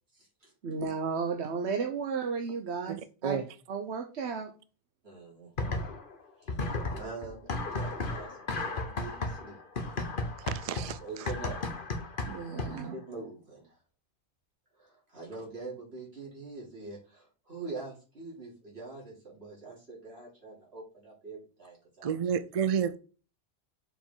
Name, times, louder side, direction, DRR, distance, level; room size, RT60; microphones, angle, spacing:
voice 1, 0.1-0.5 5.0-5.8 6.4-6.6 6.9-9.6 11.0-11.6 12.4-13.8 14.8-22.3, right 3 dB, 70° right, 3.5 m, -44 dB
voice 2, 0.6-3.4 3.7-4.5 12.2-12.9, right 5 dB, 85° right, 1.2 m, -33 dB
sound 1, 5.6-6.2 6.5-12.9, left 2 dB, 55° left, 1.3 m, -34 dB
voice 3, 10.4-11.0 22.0-23.0, right 7 dB, 50° right, 0.5 m, -29 dB
6.8 x 5.1 x 3.9 m
omnidirectional pair, 1.1 m